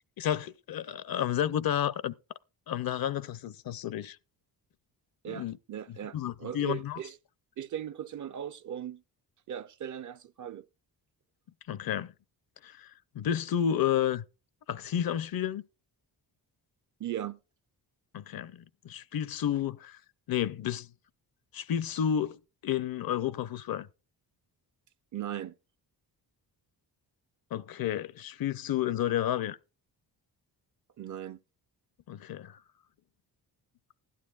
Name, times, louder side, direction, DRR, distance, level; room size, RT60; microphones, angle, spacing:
voice 1, 0.2-2.2 2.7-4.2 5.3-5.6 5.9-7.0 11.7-12.1 12.6-14.2 14.7-15.6 18.1-20.0 20.3-20.9 21.5-23.9 27.5-29.6 32.1-32.6, left 10 dB, 55° left, 0.6 m, -31 dB
voice 2, 5.2-7.2 7.6-9.0 9.5-10.7 17.0-17.4 25.1-25.5 31.0-31.4, right 10 dB, 45° right, 0.5 m, -38 dB
16.0 x 12.0 x 2.3 m
cardioid pair, 95°, 43 cm